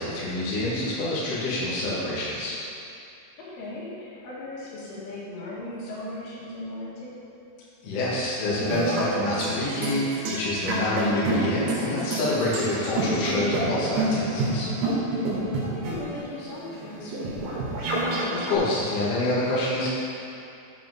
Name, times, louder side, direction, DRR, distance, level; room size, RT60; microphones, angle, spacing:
voice 1, 0.0-2.5 7.8-14.7 18.3-19.9, left 1 dB, 45° left, -9 dB, 2.0 m, -27 dB
voice 2, 3.4-7.2 15.6-17.9, left 2 dB, 75° left, -8 dB, 4.2 m, -38 dB
sound 1, 8.4-18.6, right 1 dB, 75° right, 4.0 m, -28 dB
9.1 x 5.1 x 6.4 m, 2.7 s
omnidirectional pair, 5.7 m